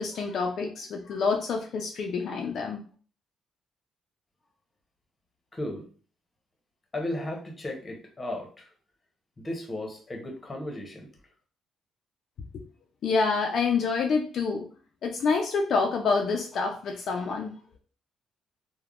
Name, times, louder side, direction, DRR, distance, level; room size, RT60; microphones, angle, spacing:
voice 1, 0.0-2.8 12.5-12.6 13.0-14.7 15.0-17.5, left 4 dB, 65° left, 2 dB, 0.4 m, -27 dB
voice 2, 5.5-5.9 6.9-8.7 9.4-11.1, left 1 dB, 25° left, 2 dB, 0.8 m, -35 dB
3.3 x 2.1 x 2.4 m, 0.40 s
cardioid pair, 90°, 0 cm